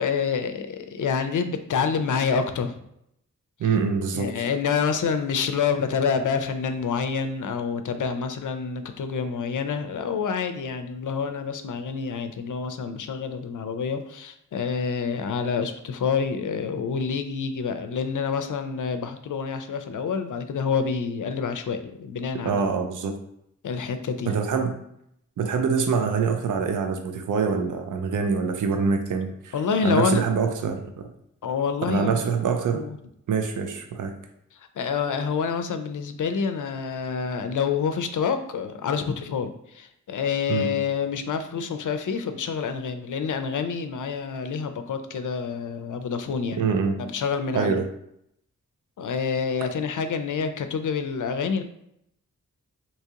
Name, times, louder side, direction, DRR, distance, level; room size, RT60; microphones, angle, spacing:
voice 1, 0.0-2.7 3.6-3.7 4.1-22.6 23.6-24.3 29.5-30.2 31.4-32.2 32.7-33.0 34.5-46.6 47.0-47.8 49.0-51.6, left 6 dB, 75° left, 8 dB, 0.5 m, -27 dB
voice 2, 3.6-4.5 22.4-23.1 24.3-24.7 25.4-29.6 29.8-31.1 31.9-32.8 33.3-34.1 40.5-40.7 46.6-47.0 47.5-47.8, right 5 dB, 75° right, 6 dB, 0.5 m, -25 dB
3.5 x 2.9 x 2.8 m, 0.76 s
wide cardioid pair, 75°, 31 cm